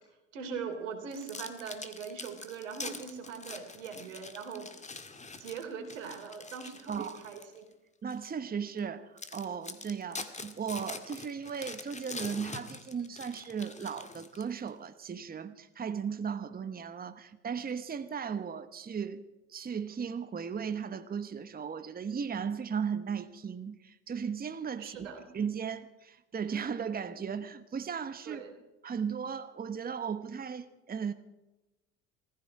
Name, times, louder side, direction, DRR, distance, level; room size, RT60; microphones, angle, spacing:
voice 1, 0.3-4.7 5.4-7.7 24.8-25.3 28.2-28.5, right 6 dB, 90° right, 3.3 m, -41 dB
sound 1, 1.1-7.6 8.1-8.3 8.8-8.9 9.2-14.7, left 3 dB, 20° left, 2.0 m, -44 dB
voice 2, 6.9-7.2 8.0-19.2 19.5-28.4 28.8-31.1, right 6 dB, 25° right, 1.2 m, -36 dB
19.5 x 15.0 x 4.8 m
hypercardioid pair, 75°, 36 cm